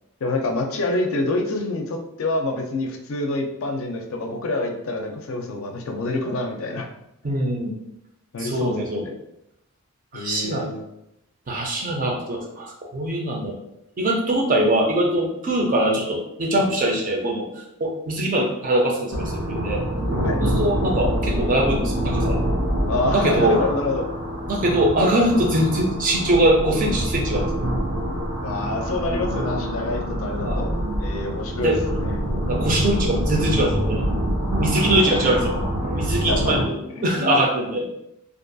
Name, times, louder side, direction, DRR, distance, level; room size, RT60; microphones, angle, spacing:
voice 1, 0.2-6.9 8.3-8.8 9.0-9.1 10.1-10.8 20.2-20.4 22.9-24.0 28.4-30.7 31.0-32.2 35.0-35.1 36.3-36.6 37.0-37.3, left 2 dB, 60° left, 2 dB, 0.4 m, -27 dB
voice 2, 7.2-7.7 8.4-9.0 10.1-10.7 11.5-13.5 14.0-17.5 17.8-19.8 20.4-22.4 23.1-23.6 24.5-27.6 30.4-30.7 31.6-31.8 32.2-34.0 34.6-35.6 35.9-37.9, right 1 dB, 35° right, 0 dB, 0.5 m, -22 dB
sound 1, 19.1-36.6, equal, 80° right, 0.8 m, -25 dB
2.5 x 2.3 x 2.6 m, 0.83 s
head